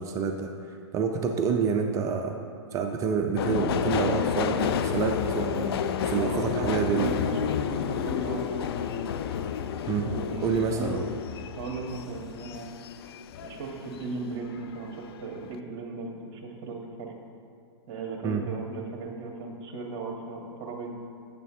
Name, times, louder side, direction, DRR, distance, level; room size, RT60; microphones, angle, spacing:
voice 1, 0.0-2.4 2.7-5.8 6.1-7.2 9.9-10.2 10.4-11.0 18.2-18.4, right 6 dB, 20° right, 4 dB, 0.4 m, -28 dB
Subway metro underground, 3.4-14.1 14.4-15.2 15.4-15.6, left 8 dB, 60° left, 0.4 m, -30 dB
voice 2, 6.2-8.8 10.0-11.0 11.6-12.7 13.4-17.1 17.9-20.9, right 3 dB, 40° right, 1 dB, 1.5 m, -37 dB
9.0 x 6.8 x 3.6 m, 2.3 s
hypercardioid pair, 130°, 15 cm